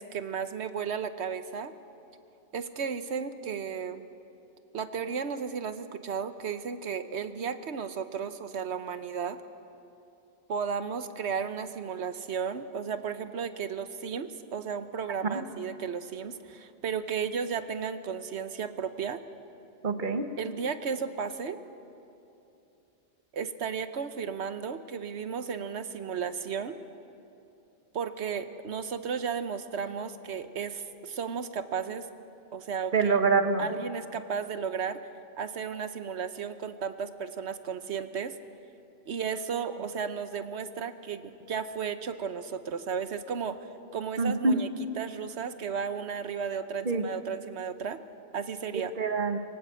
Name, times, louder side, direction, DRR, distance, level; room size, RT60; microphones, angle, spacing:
voice 1, 0.0-1.7 2.5-4.0 4.7-9.4 10.5-19.2 20.4-21.6 23.3-26.7 27.9-32.1 32.5-33.1 33.6-35.0 35.4-38.3 39.1-44.7 45.0-48.0 48.3-48.9, right 6 dB, 85° right, 10 dB, 1.2 m, -34 dB
voice 2, 19.8-20.3 32.9-33.7 44.2-44.6 46.8-47.1 49.0-49.4, right 4 dB, 50° right, 7 dB, 1.4 m, -25 dB
23.5 x 18.5 x 7.7 m, 2.8 s
omnidirectional pair, 1.1 m